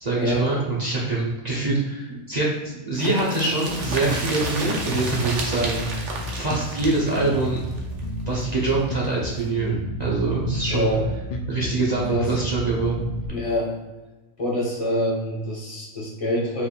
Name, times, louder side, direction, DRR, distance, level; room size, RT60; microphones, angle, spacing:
voice 1, 0.0-7.6 8.2-10.9 11.5-13.1, right 3 dB, 35° right, -5 dB, 0.8 m, -24 dB
sound 1, 2.9-8.7 9.0-9.1 9.4-9.5, right 3 dB, 60° right, 1.0 m, -32 dB
Bass guitar, 3.7-13.3, equal, 65° left, 0.5 m, -31 dB
voice 2, 10.7-11.1 12.1-12.4 13.3-13.8 14.4-16.7, left 1 dB, 25° left, -4 dB, 1.1 m, -25 dB
5.1 x 3.4 x 2.5 m, 1.1 s
omnidirectional pair, 1.4 m